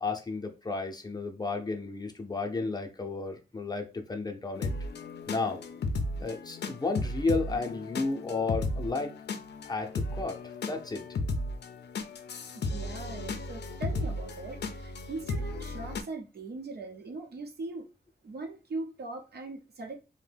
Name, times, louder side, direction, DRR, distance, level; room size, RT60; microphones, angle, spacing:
voice 1, 0.0-4.7 5.3-5.6 6.2-9.1 9.7-11.0, left 3 dB, 25° left, 0.6 m, -33 dB
sound 1, 4.6-16.0, left 2 dB, 90° left, 0.4 m, -35 dB
voice 2, 12.5-17.9 18.2-20.0, right 3 dB, 75° right, 0.7 m, -40 dB
2.6 x 2.1 x 3.3 m
wide cardioid pair, 85°, 17 cm